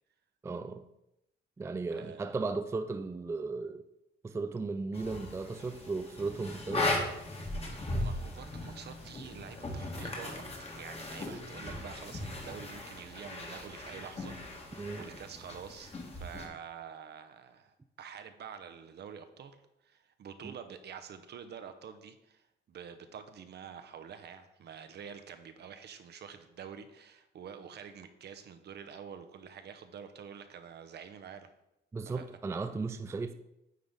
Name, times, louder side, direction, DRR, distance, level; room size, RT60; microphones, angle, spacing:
voice 1, 0.4-0.8 1.6-3.8 4.2-7.0 14.8-15.0 20.4-20.6 31.9-33.3, right 3 dB, 15° right, 0.3 m, -36 dB
voice 2, 2.0-2.4 7.7-19.6 19.8-31.5 32.1-32.6, right 7 dB, 60° right, 0.7 m, -47 dB
sound 1, 4.9-16.5, left 2 dB, 30° left, 1.4 m, -38 dB
sound 2, 6.3-11.8, left 2 dB, 70° left, 2.7 m, -52 dB
9.2 x 3.7 x 3.5 m
cardioid pair, 90°, 20 cm